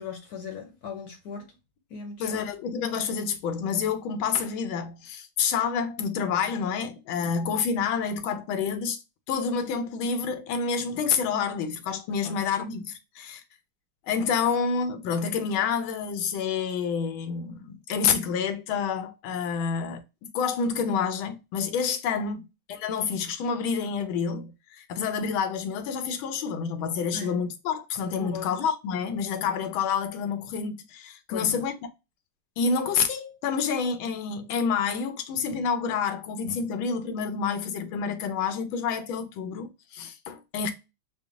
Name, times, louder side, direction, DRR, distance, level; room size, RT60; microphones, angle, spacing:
voice 1, 0.0-1.5 1.9-2.5 12.2-12.4 22.2-22.4 27.1-27.4 28.2-28.6 31.3-31.6, left 5 dB, 65° left, 1.0 m, -39 dB
voice 2, 2.2-9.0 9.3-13.4 14.1-20.0 20.3-22.4 22.7-31.7 32.6-40.7, left 6 dB, 85° left, 1.5 m, -28 dB
4.9 x 2.2 x 2.4 m
omnidirectional pair, 2.2 m